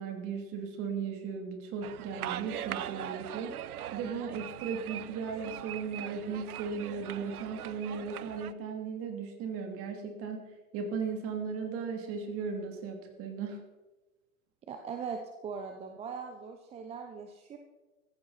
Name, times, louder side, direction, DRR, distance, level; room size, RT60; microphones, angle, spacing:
voice 1, 0.0-3.5 3.9-10.4 10.7-13.6, right 5 dB, 30° right, 3 dB, 3.0 m, -36 dB
sound 1, 1.8-8.5, right 11 dB, 85° right, 0.8 m, -41 dB
voice 2, 14.7-17.6, right 6 dB, 15° right, 5 dB, 0.8 m, -40 dB
15.0 x 14.0 x 4.2 m, 1.1 s
hypercardioid pair, 145°, 44 cm